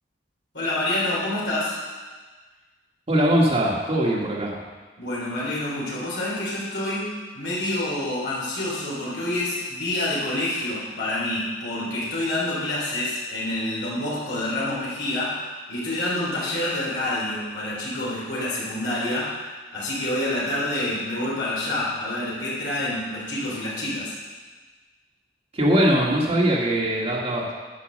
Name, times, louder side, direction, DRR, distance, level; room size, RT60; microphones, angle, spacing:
voice 1, 0.5-1.8 5.0-19.4 19.7-24.1, left 1 dB, 70° left, -7 dB, 3.4 m, -27 dB
voice 2, 3.1-4.5 25.5-27.5, right 1 dB, 35° right, -4 dB, 1.8 m, -21 dB
10.5 x 6.5 x 6.3 m, 1.4 s
head